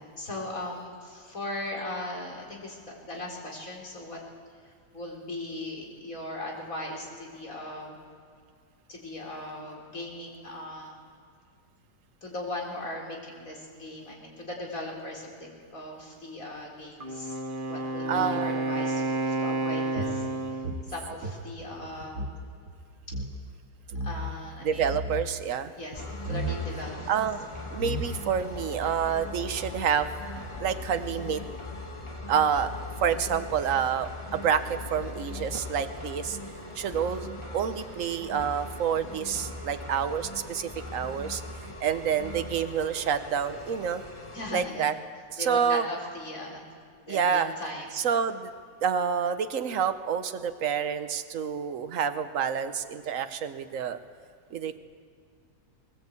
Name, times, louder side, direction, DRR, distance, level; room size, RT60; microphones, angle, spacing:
voice 1, 0.0-4.2 4.9-8.0 8.9-11.0 12.2-17.4 17.7-20.2 20.9-22.3 24.0-24.9 25.7-27.2 44.3-44.9 45.4-46.6 47.0-47.9, left 1 dB, 50° left, -1 dB, 4.4 m, -38 dB
Wind instrument woodwind instrument, 17.0-20.8, right 2 dB, 30° right, 1.5 m, -30 dB
voice 2, 18.1-18.7 24.6-25.7 27.1-27.4 27.7-30.3 30.6-31.4 32.3-32.7 33.0-36.4 36.7-37.3 37.5-41.4 41.8-44.0 44.5-44.9 45.3-45.9 47.1-47.5 47.9-48.5 48.8-54.0 54.5-54.8, right 7 dB, 55° right, 10 dB, 1.3 m, -28 dB
sound 1, 20.0-22.4 22.7-22.8 23.0-23.3 23.9-24.4 24.7-25.3 26.2-26.6 27.4-27.5 27.8-28.4, right 1 dB, 70° right, 2.4 m, -34 dB
sound 2, 25.9-44.7, left 2 dB, 15° left, 1.6 m, -40 dB
21.0 x 19.0 x 8.4 m, 2.2 s
omnidirectional pair, 1.8 m